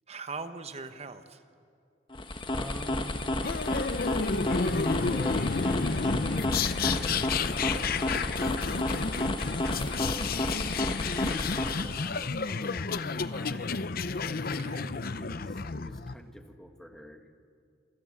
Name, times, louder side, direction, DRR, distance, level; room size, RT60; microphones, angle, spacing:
voice 1, 0.1-1.4 14.4-14.8, right 4 dB, 35° right, 9 dB, 1.1 m, -41 dB
sound 1, 2.1-12.0, left 1 dB, 25° left, 1.4 m, -31 dB
voice 2, 2.5-3.3 4.3-17.3, equal, 5° left, 5 dB, 1.5 m, -46 dB
sound 2, 3.4-16.1, left 4 dB, 50° left, 0.7 m, -31 dB
27.0 x 21.5 x 8.5 m, 2.3 s
head